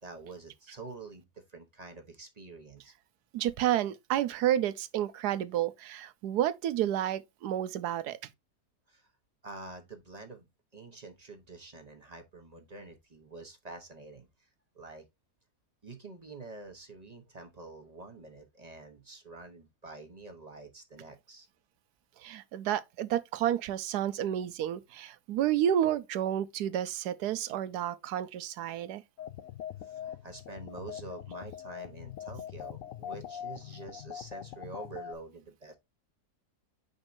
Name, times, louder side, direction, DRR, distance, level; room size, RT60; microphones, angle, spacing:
voice 1, 0.0-2.9 8.9-9.1 9.4-10.4 10.7-14.3 14.7-15.0 15.8-21.5 29.8-35.7, right 3 dB, 30° right, 0.9 m, -47 dB
voice 2, 3.3-8.2 22.2-29.0, right 11 dB, 85° right, 1.2 m, -30 dB
sound 1, 29.2-35.1, left 10 dB, 65° left, 0.9 m, -42 dB
7.2 x 5.2 x 2.6 m
omnidirectional pair, 1.7 m